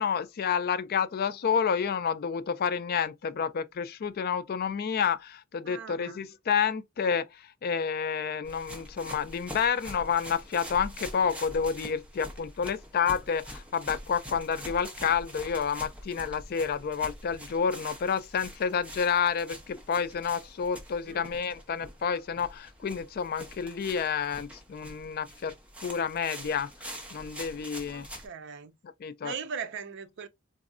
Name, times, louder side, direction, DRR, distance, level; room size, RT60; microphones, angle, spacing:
voice 1, 0.0-25.5 25.8-26.7 27.1-28.1 29.0-29.3, left 6 dB, 45° left, 0.3 m, -29 dB
voice 2, 5.7-6.2 21.1-21.4 27.9-28.8 29.2-30.3, right 6 dB, 55° right, 0.5 m, -39 dB
sound 1, 8.4-28.3, equal, 5° right, 0.8 m, -45 dB
4.0 x 2.6 x 2.4 m
head